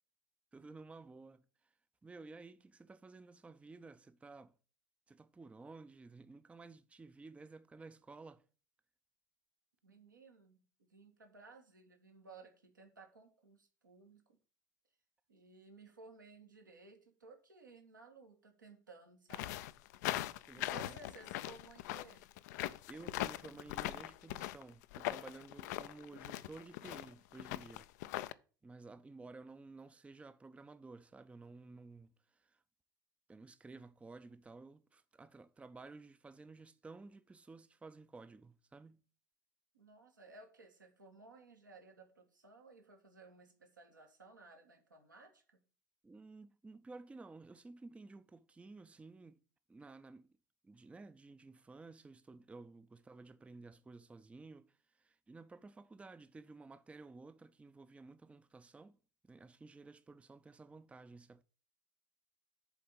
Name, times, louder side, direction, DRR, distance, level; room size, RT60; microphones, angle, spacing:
voice 1, 0.5-1.8 2.0-4.5 5.1-8.4 20.4-21.0 22.9-27.9 28.6-32.6 33.3-39.0 46.0-49.4 49.7-50.4 50.6-59.0 59.2-61.4, right 3 dB, 10° right, 0.5 m, -54 dB
voice 2, 9.8-14.4 15.3-19.5 20.5-22.3 39.7-45.6, right 3 dB, 85° right, 1.7 m, -58 dB
sound 1, 19.3-28.3, left 15 dB, 65° left, 0.4 m, -41 dB
7.1 x 4.3 x 6.8 m
figure-of-eight pair, 70°, 10 cm